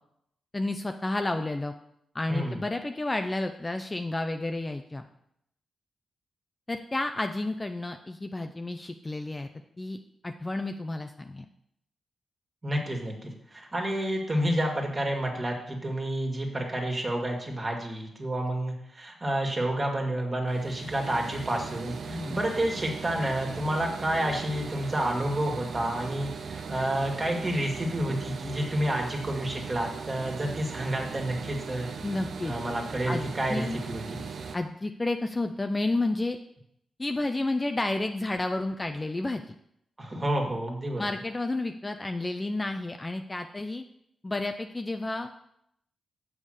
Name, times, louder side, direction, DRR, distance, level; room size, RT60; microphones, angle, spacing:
voice 1, 0.5-1.7 2.1-5.1 6.7-9.5 9.8-10.0 10.2-11.5 22.1-22.4 32.0-32.5 33.1-33.8 34.5-36.4 37.0-39.4 41.0-43.8 44.2-45.3, left 2 dB, 20° left, 6 dB, 0.5 m, -31 dB
voice 2, 2.3-2.6 12.6-31.9 32.4-34.2 40.0-41.0, right 1 dB, 30° right, 1 dB, 2.0 m, -30 dB
sound 1, 20.5-34.6, right 5 dB, 65° right, 0.7 m, -39 dB
7.2 x 5.4 x 6.4 m, 0.74 s
cardioid pair, 95°, 0 cm